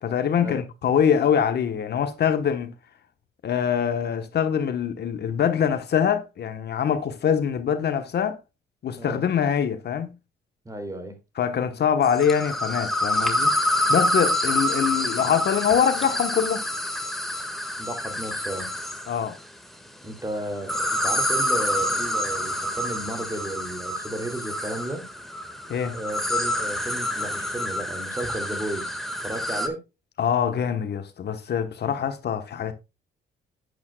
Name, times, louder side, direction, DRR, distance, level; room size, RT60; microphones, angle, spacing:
voice 1, 0.0-2.7 3.4-8.4 8.8-10.1 11.4-13.5 13.9-16.6 19.1-19.4 25.7-26.0 30.2-32.7, left 8 dB, 55° left, 1.2 m, -24 dB
voice 2, 10.6-11.2 17.8-18.8 20.0-25.1 25.9-29.8, right 1 dB, 15° right, 2.7 m, -33 dB
sound 1, 12.0-19.2 20.6-29.7, left 1 dB, ahead, 1.7 m, -27 dB
10.5 x 8.5 x 2.3 m
cardioid pair, 90°, 20 cm